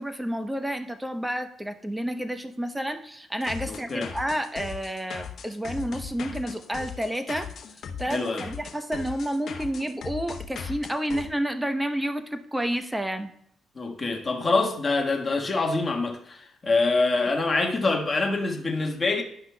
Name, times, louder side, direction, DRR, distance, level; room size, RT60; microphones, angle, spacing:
voice 1, 0.0-7.5 8.0-13.3, right 1 dB, 5° right, 7 dB, 0.8 m, -30 dB
sound 1, 3.4-11.3, left 7 dB, 60° left, 0.9 m, -38 dB
voice 2, 3.6-4.1 8.1-8.5 13.7-19.2, left 3 dB, 30° left, 1 dB, 1.5 m, -25 dB
11.0 x 5.8 x 2.3 m, 0.69 s
cardioid pair, 90°, 0 cm